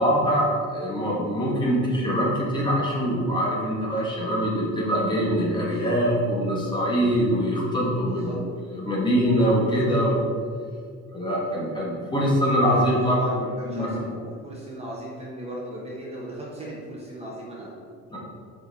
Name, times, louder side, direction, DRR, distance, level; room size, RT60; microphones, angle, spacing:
voice 1, 0.0-8.3 8.7-10.2 11.1-13.2 13.6-13.9 18.1-18.2, equal, 15° left, -5 dB, 1.5 m, -23 dB
voice 2, 5.5-5.9 8.0-8.4 12.5-17.8, equal, 20° right, -4 dB, 1.1 m, -37 dB
7.9 x 5.5 x 4.1 m, 2.2 s
cardioid pair, 170°, 30 cm